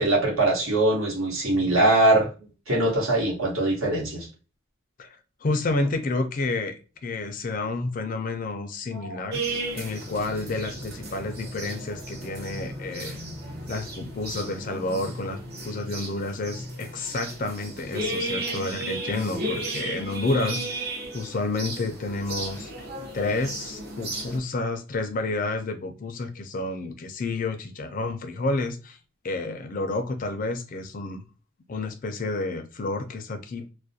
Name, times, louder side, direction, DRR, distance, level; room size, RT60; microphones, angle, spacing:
voice 1, 0.0-2.3 2.7-4.3 8.9-9.2, right 2 dB, 75° right, 1.1 m, -22 dB
voice 2, 5.0-9.4 9.7-13.2 13.7-15.4 15.6-22.9 23.1-29.0 29.2-31.2 31.7-33.7, left 2 dB, 40° left, 0.4 m, -30 dB
sound 1, 9.3-24.4, right 2 dB, 45° right, 0.7 m, -34 dB
2.3 x 2.1 x 2.6 m
head